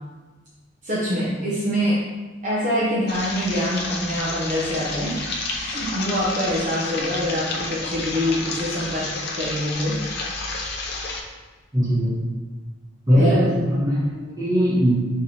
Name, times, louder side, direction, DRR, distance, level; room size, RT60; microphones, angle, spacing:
voice 1, 0.8-2.0 2.4-5.2 5.5-9.1 9.3-10.0 13.2-13.4, equal, 40° right, -8 dB, 0.6 m, -25 dB
sound 1, 3.1-11.2, left 3 dB, 55° left, 0.5 m, -30 dB
voice 2, 11.7-12.2 13.1-15.1, equal, 20° right, -8 dB, 1.1 m, -20 dB
4.1 x 3.2 x 2.8 m, 1.3 s
head